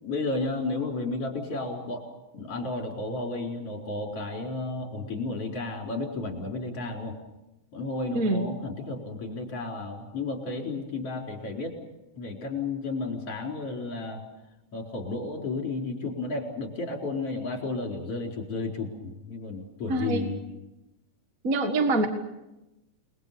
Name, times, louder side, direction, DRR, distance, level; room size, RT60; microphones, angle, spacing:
voice 1, 0.0-2.0 2.3-7.2 7.7-11.8 12.2-14.2 14.7-20.4, left 3 dB, 45° left, 1 dB, 5.4 m, -32 dB
voice 2, 8.1-8.5 19.9-20.3 21.4-22.1, right 2 dB, 35° right, 6 dB, 1.4 m, -25 dB
29.5 x 21.5 x 7.0 m, 0.97 s
omnidirectional pair, 4.0 m